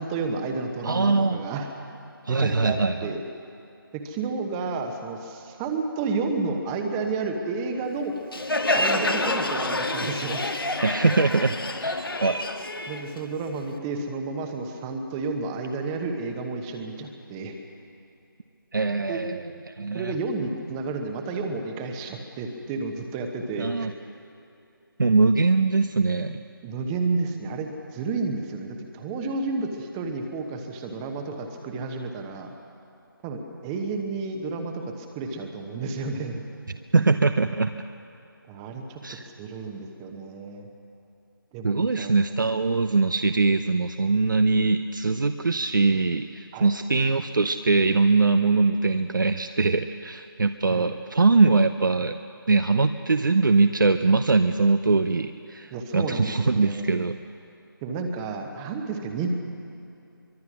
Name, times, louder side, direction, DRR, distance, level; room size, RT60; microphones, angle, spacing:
voice 1, 0.0-1.7 2.3-3.2 3.9-8.2 8.7-10.4 12.9-17.6 19.1-19.2 19.9-23.9 26.6-32.5 33.2-36.4 38.5-40.7 41.5-42.2 46.5-46.7 50.7-50.9 55.7-56.9 57.8-59.4, right 3 dB, 10° right, 5 dB, 1.1 m, -31 dB
voice 2, 0.8-1.4 2.3-3.1 10.8-11.5 11.8-12.4 18.7-20.1 23.6-23.9 25.0-26.4 36.9-37.7 39.0-39.2 41.6-52.1 52.5-57.2, right 3 dB, 60° right, 8 dB, 0.8 m, -22 dB
Crowd, 8.3-13.8, left 2 dB, 75° left, 1.8 m, -27 dB
23.5 x 23.0 x 6.2 m, 2.7 s
figure-of-eight pair, 160°, 12 cm